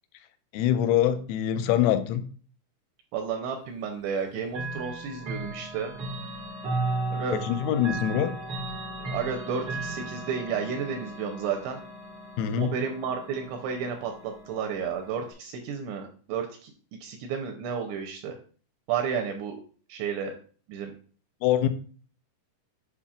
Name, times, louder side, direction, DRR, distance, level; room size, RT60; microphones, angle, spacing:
voice 1, 0.5-2.2 7.3-8.3 12.4-12.7 21.4-21.7, left 10 dB, 85° left, 10 dB, 3.3 m, -24 dB
voice 2, 3.1-5.9 7.1-7.4 8.1-8.3 9.1-11.8 12.6-16.7 17.0-18.3 18.9-19.6 19.9-20.3 20.7-20.9, right 6 dB, 80° right, 3 dB, 2.7 m, -32 dB
Chime / Clock, 4.5-15.3, right 2 dB, 60° right, 1.5 m, -36 dB
8.3 x 5.5 x 2.4 m, 0.41 s
omnidirectional pair, 5.8 m